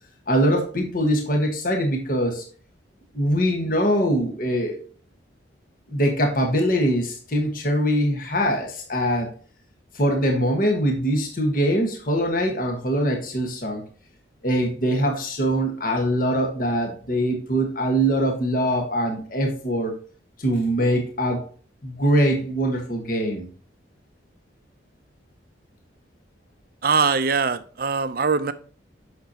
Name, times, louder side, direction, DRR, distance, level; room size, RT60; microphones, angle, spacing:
voice 1, 0.3-2.4 3.1-4.8 5.9-9.3 9.9-13.8 14.4-20.0 20.4-21.4 21.8-23.5, equal, 45° left, 1.5 m, -23 dB
voice 2, 26.8-28.5, right 5 dB, 50° right, 0.5 m, -22 dB
8.2 x 6.4 x 2.9 m
head